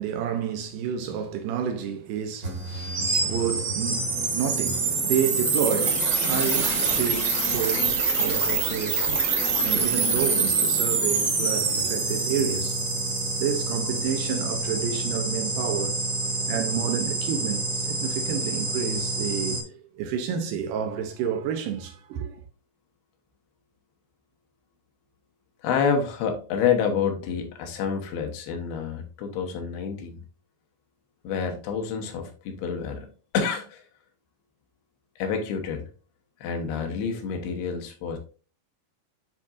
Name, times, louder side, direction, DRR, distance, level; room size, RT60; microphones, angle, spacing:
voice 1, 0.0-12.8 13.4-16.0 16.5-22.4, right 8 dB, 80° right, 2.0 m, -30 dB
sound 1, 2.4-19.6, right 3 dB, 55° right, 1.2 m, -26 dB
voice 2, 25.6-30.1 31.2-33.1 33.3-33.8 35.2-35.9 36.4-38.2, left 6 dB, 85° left, 3.0 m, -28 dB
10.0 x 3.7 x 2.5 m
omnidirectional pair, 4.5 m